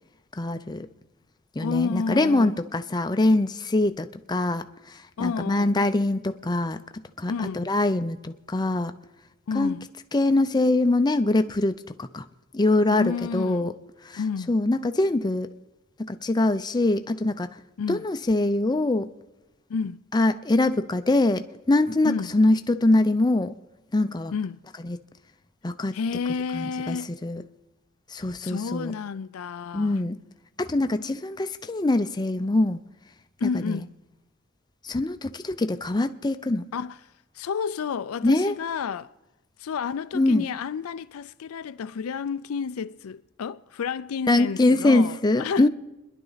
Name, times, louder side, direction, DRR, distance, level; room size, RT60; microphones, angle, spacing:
voice 1, 0.4-0.9 1.6-6.8 7.2-8.9 9.5-9.8 10.1-12.3 12.5-13.7 14.0-14.2 14.5-15.5 16.0-17.5 17.9-19.1 20.1-23.5 23.9-24.3 24.8-25.0 25.6-25.9 26.5-27.4 28.1-29.0 29.7-30.2 30.6-32.8 33.4-33.8 34.8-36.6 38.2-38.6 40.1-40.5 44.3-45.7, left 2 dB, 20° left, 0.5 m, -23 dB
voice 2, 1.6-2.5 5.2-5.8 7.3-7.7 9.5-9.9 12.9-13.7 14.2-14.6 17.8-18.0 19.7-20.0 22.0-22.3 24.3-24.6 25.9-27.1 28.4-30.0 33.4-33.9 36.7-37.0 37.4-39.1 39.6-45.7, left 5 dB, 75° left, 0.4 m, -30 dB
30.0 x 11.0 x 4.0 m
head